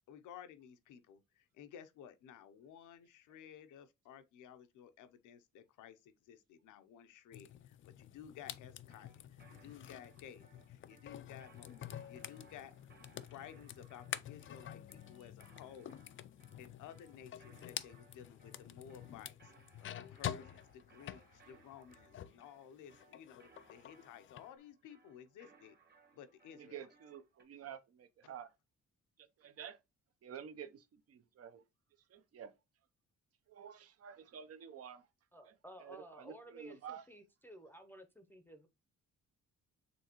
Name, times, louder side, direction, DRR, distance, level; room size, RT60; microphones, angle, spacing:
voice 1, 0.1-12.7 13.2-15.9 16.6-25.8 26.1-26.9, left 9 dB, 85° left, 0.7 m, -55 dB
sound 1, 7.3-22.5 22.8-24.5, left 10 dB, 45° left, 0.4 m, -48 dB
sound 2, 8.9-27.4, right 4 dB, 30° right, 1.3 m, -67 dB
voice 2, 26.6-28.5 29.4-29.8 30.2-31.6 32.1-32.5 33.5-35.0 35.5-35.6 35.8-37.0, right 8 dB, 55° right, 0.7 m, -50 dB
voice 3, 35.3-38.7, equal, 5° left, 0.6 m, -55 dB
5.2 x 3.3 x 2.9 m
cardioid pair, 90°, 30 cm